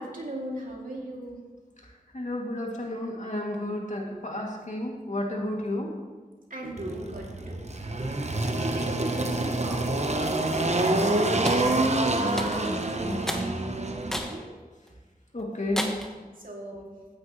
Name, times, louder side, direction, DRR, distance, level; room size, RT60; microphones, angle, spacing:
voice 1, 0.0-1.4 6.5-7.7 8.0-8.1 8.4-12.5 14.1-14.5 16.4-16.9, right 1 dB, 60° right, -2 dB, 2.5 m, -38 dB
voice 2, 1.8-5.9 12.8-13.4 15.3-15.9, left 1 dB, 50° left, -1 dB, 2.3 m, -32 dB
Engine, 6.8-14.2, right 2 dB, 45° right, 0.9 m, -27 dB
sound 1, 11.5-11.7 12.4-12.8 13.3-13.5 14.1-14.4 14.9-15.0 15.8-16.1, equal, 5° left, 1.4 m, -32 dB
15.0 x 9.5 x 3.1 m, 1.3 s
wide cardioid pair, 40°, 16 cm